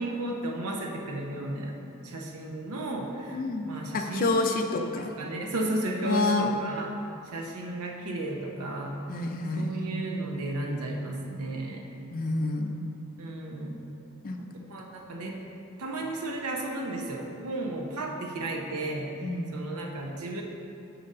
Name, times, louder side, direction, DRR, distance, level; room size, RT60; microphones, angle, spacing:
voice 1, 0.0-1.8 2.0-4.4 4.9-6.9 7.3-9.3 9.5-11.8 13.2-13.8 14.4-15.4 15.8-19.1 19.5-20.4, right 2 dB, 85° right, 0 dB, 0.7 m, -34 dB
voice 2, 3.3-5.1 6.0-6.5 9.1-10.1 12.1-12.8 14.2-14.4 19.2-19.5, left 3 dB, 40° left, 3 dB, 0.4 m, -29 dB
6.2 x 3.9 x 5.3 m, 2.7 s
head